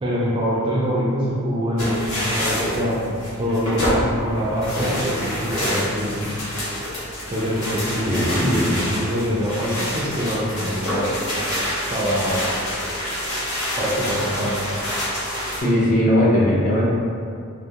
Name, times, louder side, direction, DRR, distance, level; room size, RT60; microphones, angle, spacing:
voice 1, 0.0-6.4 7.3-11.1 11.9-12.4 13.8-14.8, equal, 25° right, -6 dB, 0.3 m, -25 dB
sound 1, 1.8-15.6, equal, 70° left, 0.8 m, -27 dB
voice 2, 8.0-8.7 15.6-16.9, equal, 35° left, -6 dB, 0.5 m, -18 dB
2.3 x 2.1 x 2.7 m, 2.4 s
head